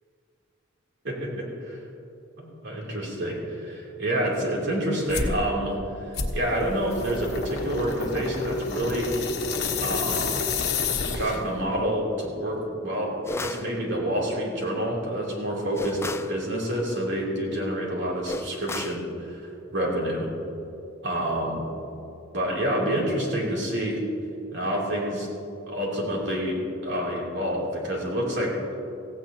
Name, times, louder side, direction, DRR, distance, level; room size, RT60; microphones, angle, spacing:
voice 1, 1.0-1.8 2.4-9.2 9.8-10.4 11.1-20.3 21.0-21.7 22.3-24.0 24.5-25.3 25.7-28.5, equal, 65° right, -3 dB, 3.2 m, -28 dB
sound 1, 5.1-5.4 6.1-11.6, left 4 dB, 60° left, 1.3 m, -29 dB
sound 2, 13.3-13.7 15.8-16.4 18.3-19.0, left 2 dB, 15° left, 0.3 m, -33 dB
16.0 x 16.0 x 3.0 m, 2.8 s
head